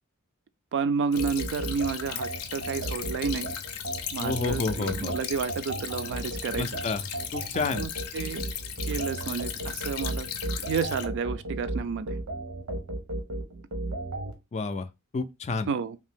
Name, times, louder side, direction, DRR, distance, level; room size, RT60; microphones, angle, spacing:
voice 1, 0.7-3.5 4.1-6.8 7.7-8.4 8.8-10.3 10.6-12.2 15.7-16.0, right 5 dB, 55° right, 0.4 m, -31 dB
Stream / Trickle dribble, 1.1-11.1, left 8 dB, 90° left, 0.5 m, -37 dB
sound 1, 1.2-14.3, right 2 dB, 85° right, 0.8 m, -34 dB
voice 2, 4.2-5.1 6.6-7.0 7.3-7.9 14.5-14.9 15.1-15.7, left 4 dB, 30° left, 0.3 m, -30 dB
2.8 x 2.6 x 3.5 m
head